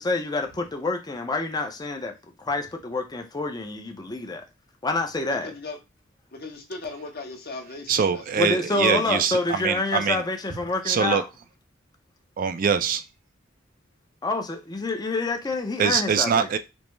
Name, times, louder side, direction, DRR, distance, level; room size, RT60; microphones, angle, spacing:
voice 1, 0.0-2.1 2.4-4.4 4.8-5.5 8.4-11.3 14.2-16.5, left 3 dB, 20° left, 0.5 m, -27 dB
voice 2, 5.4-5.8 6.3-8.5, left 3 dB, 55° left, 0.9 m, -38 dB
voice 3, 7.9-10.2 10.9-11.2 12.4-13.0 15.8-16.6, right 7 dB, 45° right, 0.3 m, -23 dB
5.2 x 2.0 x 3.1 m
head